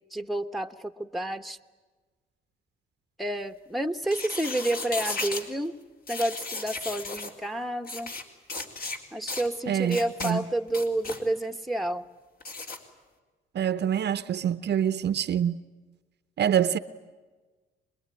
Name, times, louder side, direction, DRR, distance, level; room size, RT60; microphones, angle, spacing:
voice 1, 0.1-1.6 3.2-5.8 6.1-8.1 9.1-12.0, right 1 dB, ahead, 1.2 m, -30 dB
sound 1, 4.0-5.5 6.1-7.3 7.8-8.2 8.5-9.0 9.3-9.5 9.9-10.3 10.7-11.2 12.4-12.8, left 3 dB, 50° left, 3.7 m, -35 dB
voice 2, 9.7-10.4 13.5-15.6 16.4-16.8, right 9 dB, 60° right, 0.9 m, -26 dB
25.0 x 22.0 x 9.8 m
cardioid pair, 90°, 20 cm